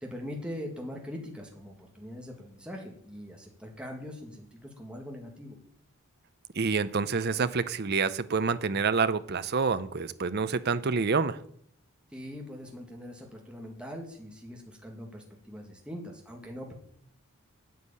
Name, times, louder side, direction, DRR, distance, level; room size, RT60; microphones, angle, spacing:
voice 1, 0.0-5.6 12.1-16.7, equal, 5° right, 1.9 m, -42 dB
voice 2, 6.5-11.4, right 5 dB, 45° right, 0.6 m, -27 dB
9.4 x 8.2 x 8.5 m
head